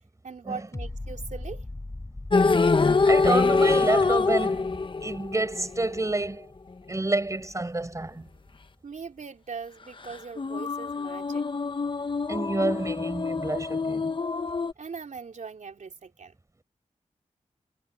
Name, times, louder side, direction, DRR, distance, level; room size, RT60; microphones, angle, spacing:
voice 1, 0.2-1.7 8.8-11.5 14.8-16.3, right 5 dB, 70° right, 3.5 m, -40 dB
sound 1, 0.7-7.8 8.2-8.3, left 2 dB, 25° left, 4.4 m, -41 dB
sound 2, 2.3-6.2 10.0-14.7, left 4 dB, 40° left, 0.9 m, -25 dB
voice 2, 3.0-6.5 6.9-8.3 12.3-14.1, right 2 dB, 25° right, 5.0 m, -28 dB
wide cardioid pair, 100°, 13 cm